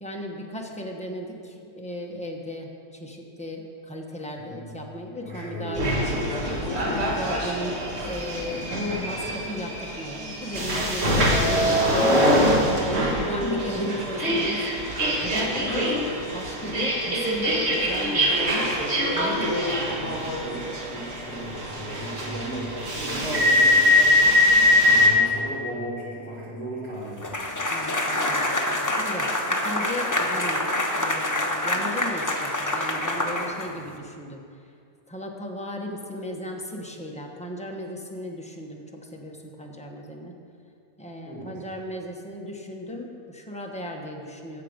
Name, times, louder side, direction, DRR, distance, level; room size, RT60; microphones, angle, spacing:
voice 1, 0.0-5.9 6.7-14.7 15.1-18.6 19.1-20.0 27.6-30.6 30.9-34.4 35.1-40.3 41.0-44.6, left 1 dB, 5° left, 0 dB, 0.7 m, -36 dB
voice 2, 4.4-4.8 5.1-6.2 19.6-23.9 24.8-27.3 41.2-41.6, right 1 dB, 70° right, -9 dB, 4.1 m, -36 dB
sound 1, 5.8-25.1, left 1 dB, 40° right, 1.8 m, -23 dB
sound 2, 27.2-34.0, left 1 dB, 25° left, 0.4 m, -26 dB
15.0 x 6.7 x 5.2 m, 2.5 s
omnidirectional pair, 1.8 m